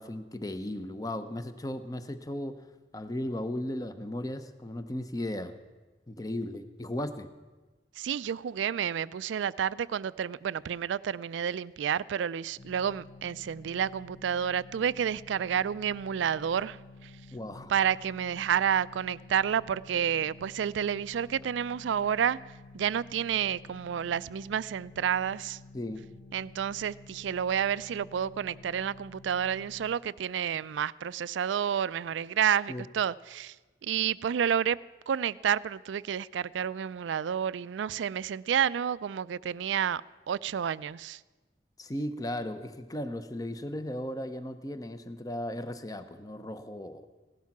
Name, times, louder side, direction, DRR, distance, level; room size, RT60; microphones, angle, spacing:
voice 1, 0.0-2.6 2.9-5.5 6.1-7.3 17.3-17.7 25.7-26.0 32.7-32.8 41.8-47.1, left 1 dB, 20° left, 0.7 m, -36 dB
voice 2, 8.0-17.1 17.7-22.4 22.7-25.6 26.3-33.6 33.8-34.8 35.1-40.0 40.3-41.2, right 8 dB, 85° right, 0.3 m, -30 dB
sound 1, 12.6-30.0, left 3 dB, 50° left, 1.0 m, -51 dB
16.0 x 12.0 x 5.9 m
head